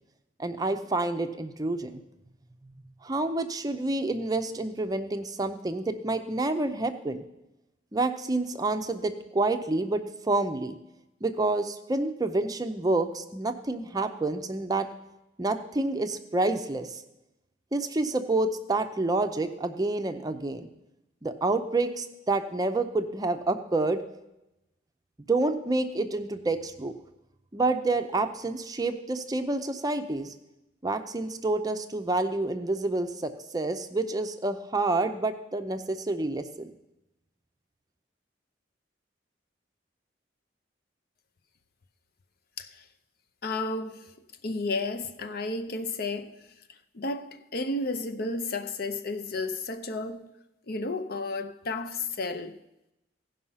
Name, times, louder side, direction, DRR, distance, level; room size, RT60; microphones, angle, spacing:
voice 1, 0.4-2.0 3.0-7.2 7.9-10.8 11.2-14.9 15.4-17.0 17.7-20.7 21.2-24.0 25.3-26.9 27.5-30.3 30.8-36.7, right 2 dB, 20° right, 0.5 m, -28 dB
voice 2, 43.4-44.1 44.4-50.3 50.7-52.6, left 3 dB, 55° left, 0.6 m, -32 dB
16.0 x 5.5 x 5.6 m
head